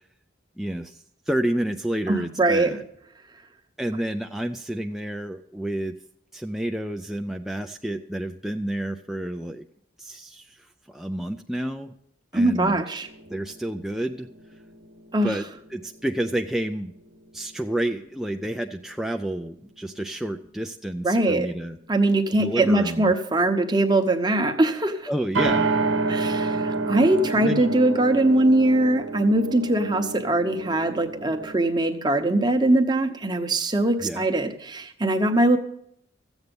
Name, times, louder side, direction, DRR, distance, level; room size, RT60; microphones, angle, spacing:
voice 1, 0.6-2.8 3.8-5.9 6.3-9.6 10.0-11.9 12.3-12.8 13.3-14.6 15.2-15.5 15.7-16.9 17.3-21.8 22.4-23.1 25.1-25.7 27.3-27.8 34.0-34.2, right 1 dB, ahead, 4 dB, 0.4 m, -30 dB
voice 2, 2.1-2.7 12.3-13.1 15.1-15.3 21.0-21.5 21.9-25.1 26.1-35.6, right 2 dB, 20° right, 6 dB, 0.9 m, -21 dB
sound 1, 13.0-16.8 17.1-17.2 25.4-31.6, right 3 dB, 80° right, 0.9 m, -29 dB
14.5 x 8.1 x 5.3 m, 0.72 s
head